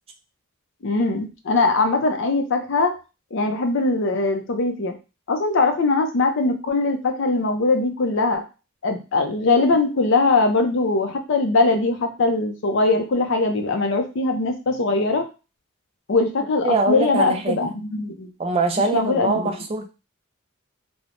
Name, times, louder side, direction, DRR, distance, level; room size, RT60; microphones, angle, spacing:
voice 1, 0.8-2.9 3.3-5.0 5.3-8.4 8.8-15.3 16.1-18.3 18.9-19.4, left 3 dB, 60° left, 5 dB, 0.5 m, -21 dB
voice 2, 16.6-17.7 18.4-19.9, right 3 dB, 25° right, 6 dB, 0.3 m, -23 dB
3.1 x 2.0 x 2.5 m, 0.30 s
head